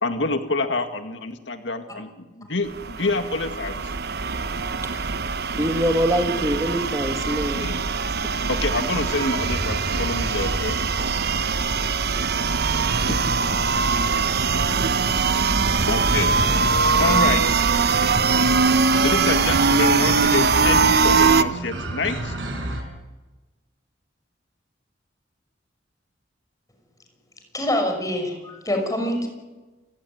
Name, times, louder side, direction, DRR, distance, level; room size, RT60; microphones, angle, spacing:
voice 1, 0.0-3.9 7.5-7.8 8.5-10.8 13.1-13.2 15.9-16.3 17.0-17.4 19.0-22.3, left 3 dB, 80° left, 7 dB, 2.1 m, -26 dB
sound 1, 2.7-21.4, right 5 dB, 60° right, 1.0 m, -22 dB
voice 2, 5.6-7.7, equal, 20° right, 5 dB, 1.9 m, -23 dB
sound 2, 9.4-17.8, equal, 40° left, 4.2 m, -33 dB
sound 3, 12.9-22.8, right 1 dB, 90° right, 5.2 m, -32 dB
voice 3, 27.5-29.3, left 1 dB, 20° left, 4 dB, 6.0 m, -25 dB
29.5 x 17.0 x 9.5 m, 1.2 s
head